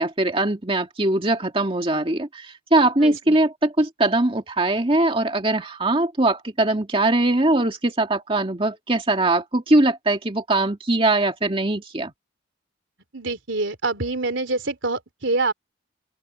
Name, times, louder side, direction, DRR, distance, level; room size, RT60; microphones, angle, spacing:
voice 1, 0.0-12.1, right 2 dB, 30° right, 2.1 m, -21 dB
voice 2, 3.0-3.4 13.1-15.5, right 3 dB, 80° right, 3.1 m, -26 dB
open air
head